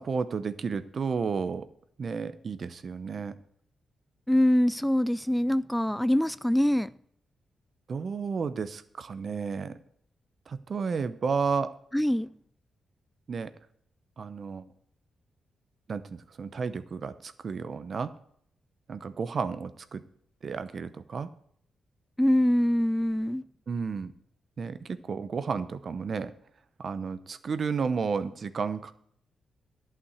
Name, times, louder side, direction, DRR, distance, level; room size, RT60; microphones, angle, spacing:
voice 1, 0.0-1.6 2.0-3.3 7.9-9.7 10.5-11.7 13.3-13.5 14.2-14.6 15.9-18.1 18.9-20.0 20.4-21.3 23.7-24.1 24.6-26.3 26.8-28.9, right 5 dB, 55° right, 0.8 m, -32 dB
voice 2, 4.3-6.9 11.9-12.3 22.2-23.4, left 1 dB, 5° left, 0.3 m, -24 dB
11.0 x 5.9 x 8.0 m
supercardioid pair, 55°, 0 cm